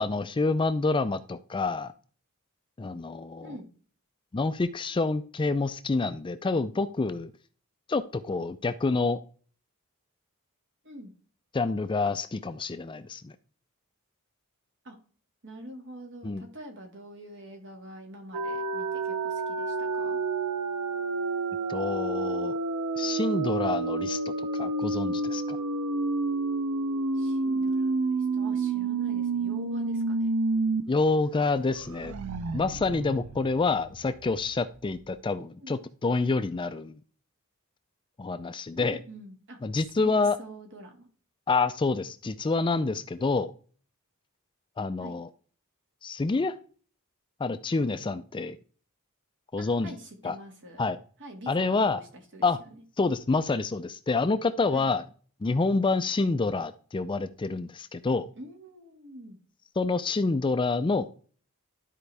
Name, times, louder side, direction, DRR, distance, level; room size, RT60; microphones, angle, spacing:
voice 1, 0.0-1.9 2.8-3.5 4.3-7.3 7.9-9.2 11.5-13.3 16.2-16.4 21.7-22.5 23.0-25.6 30.9-32.1 32.5-37.0 38.2-39.0 39.6-40.4 41.5-43.5 44.8-45.3 46.0-46.5 47.4-48.6 49.5-49.9 50.2-50.4 50.8-51.0 51.5-52.0 52.4-52.6 53.0-55.0 55.4-58.3 59.8-61.1, left 3 dB, 20° left, 12 dB, 0.4 m, -27 dB
voice 2, 15.4-20.2 27.1-27.9 28.3-30.3 35.6-35.8 38.8-39.6 40.0-41.1 45.0-45.2 49.6-50.8 51.2-52.1 52.3-52.8 54.7-54.9 58.4-59.4, right 1 dB, 55° right, 3 dB, 2.1 m, -45 dB
sound 1, 18.3-30.8 31.2-31.3 31.6-34.3, right 3 dB, 90° right, 0.6 m, -29 dB
12.0 x 4.6 x 3.4 m, 0.42 s
head